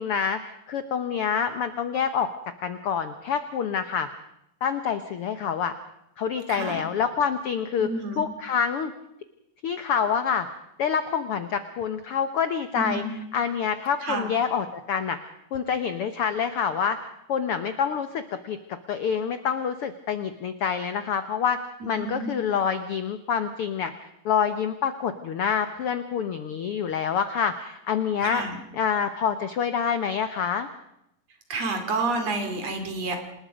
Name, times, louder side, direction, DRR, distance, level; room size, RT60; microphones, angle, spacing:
voice 1, 0.0-2.3 2.6-4.1 4.6-5.7 6.2-7.9 8.2-8.9 9.6-10.5 10.8-13.0 13.3-15.2 15.5-17.0 17.3-21.6 21.8-23.9 24.2-28.4 28.7-30.7, left 7 dB, 75° left, 10 dB, 1.3 m, -27 dB
voice 2, 6.5-6.8 7.8-8.2 12.8-13.1 14.0-14.3 21.9-22.3 28.2-28.6 31.5-33.2, right 3 dB, 50° right, 6 dB, 3.5 m, -29 dB
27.0 x 20.0 x 5.1 m, 0.80 s
omnidirectional pair, 3.8 m